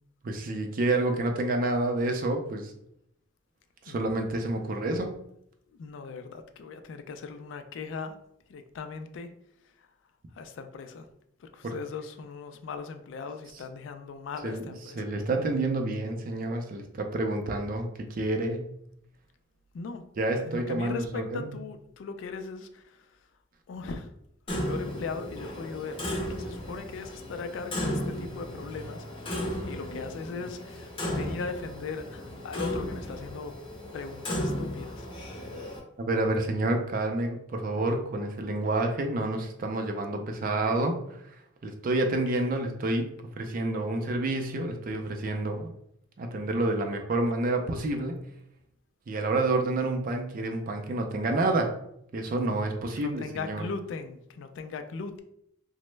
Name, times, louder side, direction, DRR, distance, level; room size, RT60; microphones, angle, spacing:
voice 1, 0.2-2.7 3.8-5.1 11.6-11.8 14.4-14.6 14.9-18.7 20.2-21.6 36.0-41.4 41.6-43.1 43.4-45.7 46.2-48.2 49.1-51.8 52.1-53.6, right 2 dB, 45° right, 4 dB, 0.4 m, -29 dB
voice 2, 5.7-8.1 8.5-9.3 10.3-11.1 11.4-15.1 19.7-20.0 20.5-23.1 23.7-24.1 24.5-29.0 29.3-33.5 33.9-35.1 53.0-55.2, left 4 dB, 70° left, 8 dB, 0.3 m, -39 dB
Clock, 24.5-35.8, equal, 30° left, 0.6 m, -35 dB
3.0 x 2.0 x 3.2 m, 0.74 s
head